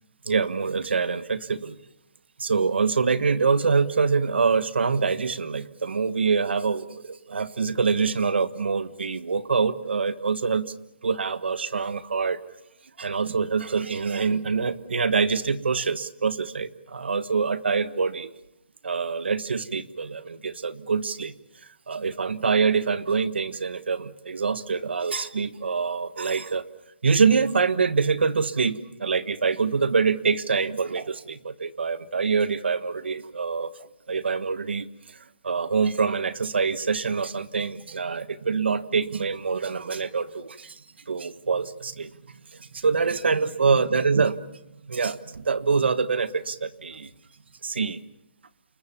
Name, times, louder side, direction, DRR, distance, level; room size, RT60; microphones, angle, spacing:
voice 1, 0.3-1.8 2.4-10.7 11.0-12.4 13.0-18.3 18.8-21.4 21.9-26.6 27.0-33.7 34.1-35.2 35.4-40.8 41.1-42.1 42.6-44.4 44.9-47.1 47.6-48.0, right 5 dB, 80° right, 13 dB, 1.4 m, -25 dB
29.5 x 20.5 x 7.3 m, 0.85 s
hypercardioid pair, 155°, 6 cm